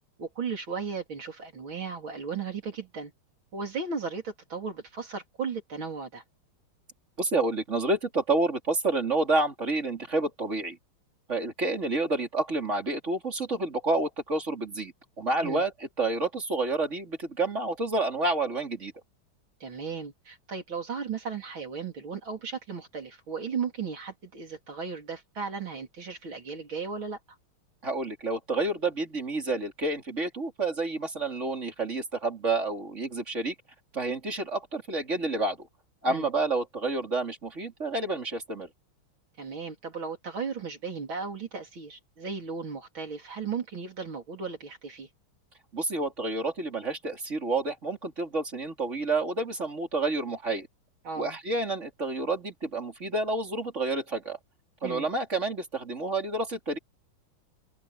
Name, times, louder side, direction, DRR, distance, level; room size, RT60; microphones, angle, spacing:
voice 1, 0.2-3.1 3.5-6.2 15.4-15.6 19.6-27.2 36.1-36.3 39.4-45.1 51.0-51.4 54.8-55.1, right 5 dB, 70° right, 4.6 m, -35 dB
voice 2, 7.2-10.8 11.3-15.7 16.0-18.9 27.8-33.5 33.9-35.7 36.0-38.7 45.7-50.7 51.2-54.4 54.8-56.8, right 2 dB, 35° right, 3.8 m, -29 dB
open air
omnidirectional pair, 2.3 m